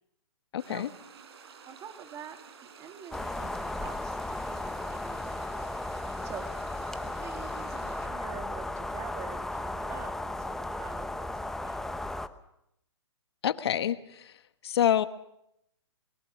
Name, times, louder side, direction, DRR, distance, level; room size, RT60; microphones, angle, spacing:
voice 1, 0.5-0.9 13.4-14.3 14.6-15.1, left 10 dB, 60° left, 12 dB, 1.4 m, -27 dB
sound 1, 0.6-8.1, right 6 dB, 60° right, 4.0 m, -51 dB
voice 2, 1.7-5.8 6.2-6.5 7.0-11.9, right 7 dB, 20° right, 6 dB, 2.2 m, -46 dB
sound 2, 3.1-12.3, left 2 dB, 5° left, 0.8 m, -35 dB
22.5 x 22.0 x 6.3 m, 0.80 s
hypercardioid pair, 140°, 15 cm